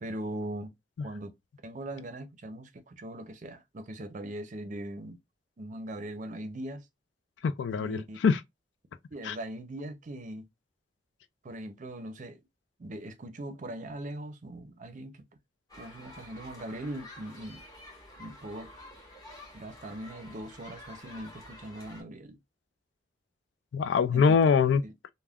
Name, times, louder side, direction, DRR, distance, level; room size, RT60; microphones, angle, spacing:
voice 1, 0.0-0.7 1.0-1.3 1.6-5.2 5.6-6.9 7.8-8.2 9.1-10.5 11.4-12.4 12.8-15.1 15.8-17.6 18.2-18.7 19.5-22.4 24.1-24.4 24.8-24.9, right 1 dB, 45° right, 0.5 m, -40 dB
voice 2, 7.4-8.4 9.3-9.4 23.7-24.8, left 6 dB, 80° left, 0.3 m, -23 dB
sound 1, 15.7-22.0, left 1 dB, 20° left, 1.1 m, -49 dB
3.4 x 2.1 x 2.2 m
head